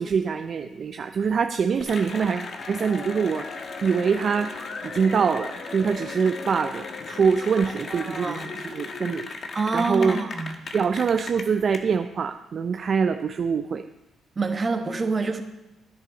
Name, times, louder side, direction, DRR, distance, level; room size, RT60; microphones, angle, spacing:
voice 1, 0.0-3.5 3.8-4.5 4.8-9.3 9.7-10.2 10.7-13.8, right 6 dB, 50° right, 8 dB, 0.5 m, -24 dB
Cheering / Applause, 1.8-11.8, left 4 dB, 50° left, 1.2 m, -36 dB
voice 2, 7.6-8.5 9.5-10.6 14.4-15.4, right 3 dB, 30° right, 5 dB, 1.2 m, -27 dB
10.5 x 9.8 x 3.9 m, 0.99 s
cardioid pair, 90°, 0 cm